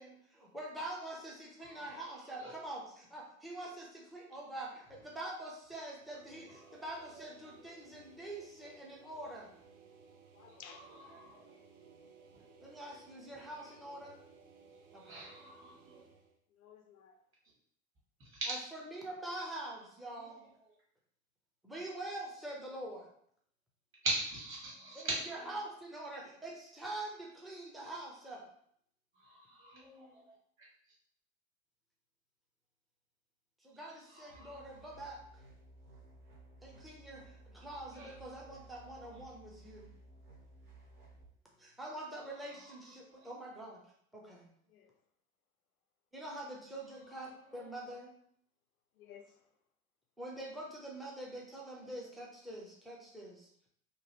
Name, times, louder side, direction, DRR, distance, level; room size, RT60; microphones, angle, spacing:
voice 1, 0.0-9.5 12.6-14.2 14.9-15.2 18.7-20.5 21.6-23.1 25.0-28.4 33.6-35.2 36.6-39.9 41.6-43.8 44.1-44.5 46.1-48.1 50.2-53.5, right 1 dB, ahead, 0.5 m, -45 dB
voice 2, 1.6-2.6 6.5-6.8 7.1-7.3 10.5-11.6 12.3-12.4 12.9-13.0 13.6-13.7 14.9-16.1 18.2-18.5 20.2-20.3 24.0-25.5 29.1-30.7 34.1-34.8 37.9-38.7 39.0-39.1 42.2-42.8 43.1-43.3 47.0-47.7 51.5-51.8, right 2 dB, 30° right, 1.4 m, -43 dB
sound 1, 5.9-16.4, right 5 dB, 60° right, 0.7 m, -60 dB
voice 3, 10.3-11.0 16.5-17.2 44.7-44.9 49.0-49.4, left 8 dB, 80° left, 0.6 m, -55 dB
sound 2, 34.3-41.2, right 2 dB, 75° right, 1.0 m, -57 dB
3.0 x 2.4 x 2.9 m
hypercardioid pair, 90°, 43 cm